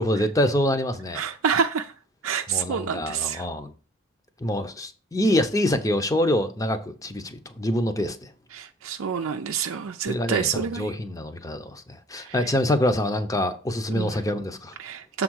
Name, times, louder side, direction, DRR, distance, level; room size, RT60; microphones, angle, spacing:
voice 1, 0.0-1.2 2.5-3.7 4.4-8.3 10.1-14.8, left 1 dB, 15° left, 0.7 m, -25 dB
voice 2, 1.1-1.9 2.2-3.4 8.5-10.9 12.2-12.4 13.9-14.1 14.8-15.2, right 6 dB, 90° right, 0.5 m, -27 dB
6.9 x 3.7 x 6.3 m
head